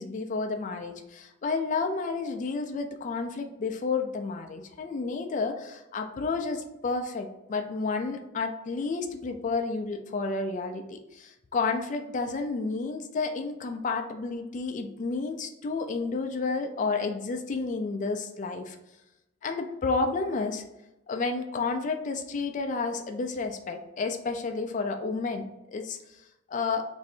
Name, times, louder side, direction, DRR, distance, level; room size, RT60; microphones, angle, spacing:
voice 1, 0.0-18.8 19.4-20.6 21.1-26.0 26.5-26.9, left 4 dB, 40° left, 5 dB, 0.4 m, -31 dB
3.1 x 2.6 x 4.2 m, 0.94 s
head